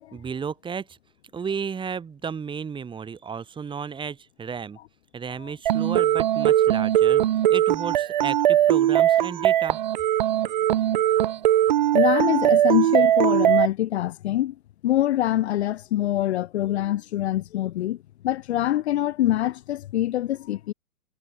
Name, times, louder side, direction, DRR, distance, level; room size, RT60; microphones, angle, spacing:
voice 1, 0.1-1.0 1.3-4.8 5.1-7.2 7.5-9.8, right 6 dB, 10° right, 2.0 m, -33 dB
sound 1, 5.7-13.7, right 12 dB, 35° right, 0.4 m, -20 dB
voice 2, 11.9-14.5 14.8-18.0 18.2-20.7, left 13 dB, 50° left, 1.1 m, -24 dB
figure-of-eight pair, 120°, 43 cm